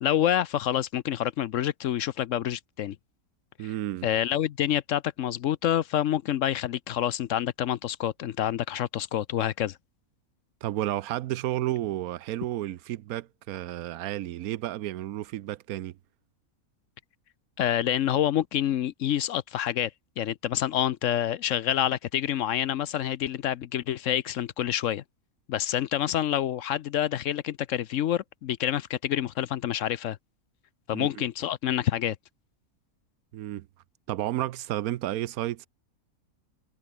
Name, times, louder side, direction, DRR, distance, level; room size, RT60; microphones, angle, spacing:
voice 1, 0.0-3.0 4.0-9.8 17.6-19.9 20.2-25.0 25.5-30.2 30.9-32.2, left 11 dB, 65° left, 0.9 m, -27 dB
voice 2, 3.6-4.1 10.6-16.0 30.9-31.2 33.3-33.7 34.1-35.7, right 14 dB, 80° right, 1.1 m, -32 dB
omnidirectional pair, 1.5 m